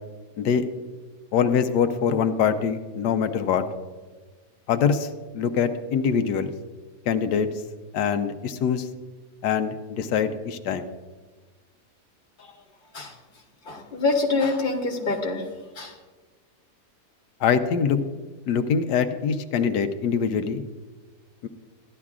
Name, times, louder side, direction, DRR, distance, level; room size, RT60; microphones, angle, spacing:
voice 1, 1.3-3.6 4.7-5.1 5.3-6.5 7.1-7.5 7.9-8.9 9.4-10.9 17.4-18.0 18.5-20.6 21.4-21.5, left 7 dB, 85° left, 8 dB, 1.2 m, -23 dB
voice 2, 13.6-15.4 15.7-16.0, left 3 dB, 35° left, 2 dB, 1.2 m, -26 dB
14.5 x 11.0 x 2.4 m, 1.3 s
omnidirectional pair, 1.7 m